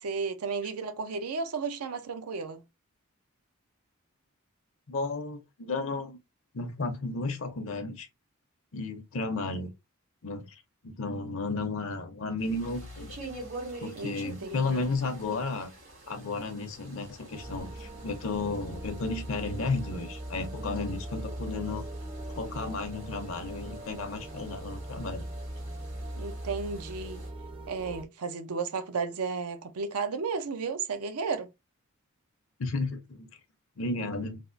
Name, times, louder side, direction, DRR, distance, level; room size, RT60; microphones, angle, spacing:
voice 1, 0.0-2.6 14.0-14.1 14.4-14.9 26.2-27.3 27.7-31.5, right 5 dB, 90° right, 0.5 m, -33 dB
voice 2, 4.9-6.2 6.5-8.1 8.7-9.7 10.2-13.2 13.8-15.7 16.1-21.9 22.3-25.2 32.6-33.3 33.8-34.4, left 3 dB, 60° left, 0.6 m, -33 dB
sound 1, 12.4-27.3, right 1 dB, 70° right, 1.9 m, -47 dB
sound 2, 17.3-28.1, right 1 dB, 25° right, 0.4 m, -40 dB
3.4 x 2.4 x 2.5 m
head